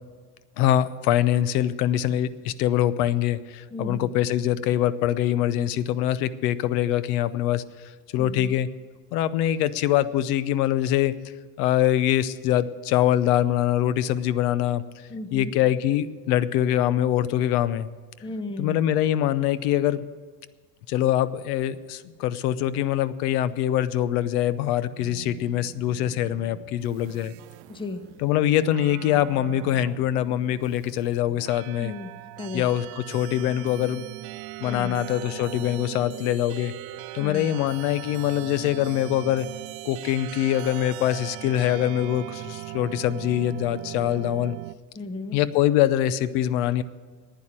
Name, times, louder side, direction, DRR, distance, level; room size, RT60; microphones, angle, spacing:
voice 1, 0.6-8.7 9.1-11.1 11.6-14.8 15.3-17.9 18.6-20.0 20.9-27.3 28.2-31.9 32.5-34.0 34.6-36.7 37.1-39.5 39.8-44.6 45.3-46.8, left 12 dB, 80° left, 17 dB, 0.8 m, -24 dB
voice 2, 3.7-4.1 8.2-8.6 15.1-15.5 18.2-18.8 27.7-28.0 31.8-32.1 32.4-32.6 34.6-35.0 37.2-37.5 44.9-45.4, left 2 dB, 10° left, 10 dB, 0.8 m, -35 dB
sound 1, 25.0-44.8, right 19 dB, 60° right, 0.5 m, -40 dB
11.0 x 9.3 x 8.8 m, 1.4 s
supercardioid pair, 110°, 45 cm